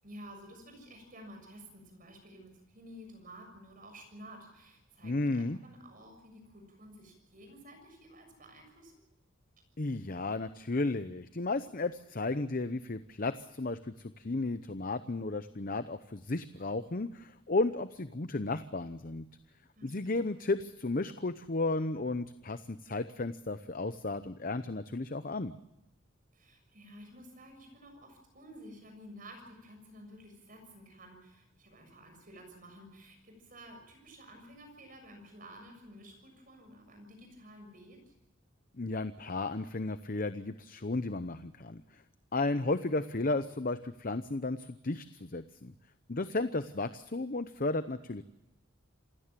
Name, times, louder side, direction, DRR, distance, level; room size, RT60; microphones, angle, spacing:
voice 1, 0.0-8.9 19.7-20.3 26.3-38.1, equal, 40° right, 5 dB, 6.9 m, -52 dB
voice 2, 5.0-5.6 9.8-19.2 19.8-25.5 38.8-42.0 42.3-45.7 46.1-48.2, left 2 dB, 40° left, 11 dB, 0.8 m, -34 dB
28.0 x 16.5 x 7.5 m, 0.91 s
head